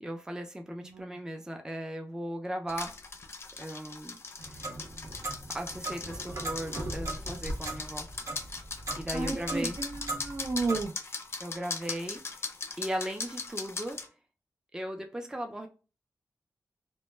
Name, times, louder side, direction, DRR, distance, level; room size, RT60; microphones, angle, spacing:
voice 1, 0.0-3.0 3.6-4.2 4.5-4.6 5.5-8.1 9.0-9.8 11.4-12.5 12.8-14.0 14.7-15.7, equal, 10° right, 0.4 m, -37 dB
voice 2, 0.8-1.2 9.1-10.9, right 3 dB, 80° right, 0.5 m, -33 dB
sound 1, 2.7-14.1, left 4 dB, 45° left, 0.5 m, -39 dB
Clock, 4.4-10.9, right 2 dB, 60° right, 0.9 m, -38 dB
2.1 x 2.1 x 3.1 m
wide cardioid pair, 110°, 6 cm